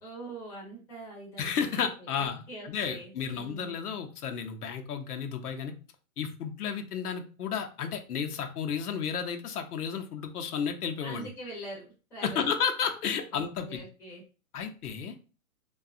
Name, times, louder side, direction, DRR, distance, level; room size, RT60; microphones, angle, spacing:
voice 1, 0.0-3.7 11.0-12.5 13.3-14.2, right 1 dB, 5° left, -5 dB, 0.5 m, -44 dB
voice 2, 1.4-5.7 6.2-11.3 12.2-13.8 14.5-15.1, left 7 dB, 85° left, 5 dB, 0.7 m, -32 dB
2.7 x 2.3 x 2.4 m, 0.35 s
hypercardioid pair, 140°, 44 cm